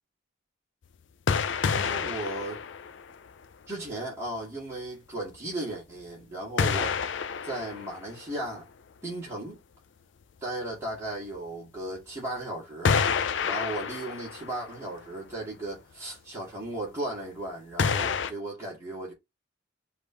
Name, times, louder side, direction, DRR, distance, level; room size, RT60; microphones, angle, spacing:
sound 1, 1.3-3.5 3.9-4.0 6.6-8.5 11.4-11.5 12.8-14.8 15.1-15.2 17.8-18.3, left 6 dB, 75° left, 0.5 m, -28 dB
voice 1, 1.7-2.6 3.7-7.0 7.4-8.7 9.0-9.6 10.4-12.9 13.4-19.1, right 1 dB, 15° right, 2.2 m, -36 dB
5.1 x 3.0 x 3.4 m
head